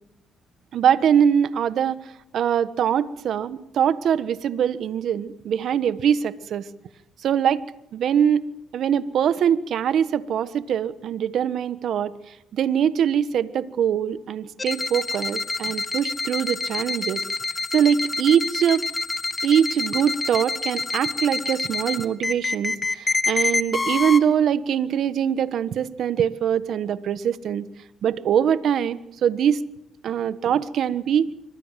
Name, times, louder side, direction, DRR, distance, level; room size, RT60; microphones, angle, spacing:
voice 1, 0.7-6.7 7.2-7.6 7.9-8.4 8.7-17.2 17.7-18.8 19.4-27.7 28.0-29.6 30.0-31.3, right 8 dB, 65° right, 14 dB, 1.4 m, -23 dB
sound 1, 14.6-24.2, left 3 dB, 25° left, 2.4 m, -27 dB
26.0 x 24.5 x 7.6 m, 0.79 s
cardioid pair, 80°, 0 cm